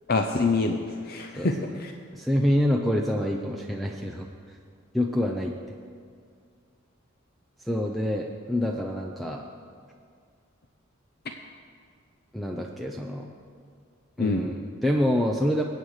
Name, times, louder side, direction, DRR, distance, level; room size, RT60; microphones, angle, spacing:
voice 1, 0.1-1.9 14.2-14.5, left 3 dB, 50° left, 4 dB, 0.7 m, -26 dB
voice 2, 1.3-1.7 2.1-4.3 4.9-5.5 7.6-9.4 12.3-13.3 14.2-15.6, equal, ahead, 1 dB, 0.6 m, -26 dB
21.5 x 8.8 x 4.9 m, 2.2 s
head